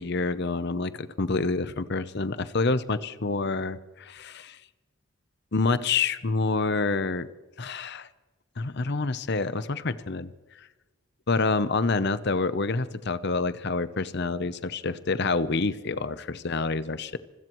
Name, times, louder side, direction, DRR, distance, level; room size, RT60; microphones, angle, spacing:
voice 1, 0.0-4.6 5.5-7.3 7.6-8.1 8.6-10.3 11.3-17.2, left 3 dB, 50° left, 13 dB, 0.7 m, -27 dB
26.0 x 17.0 x 3.1 m, 1.2 s
head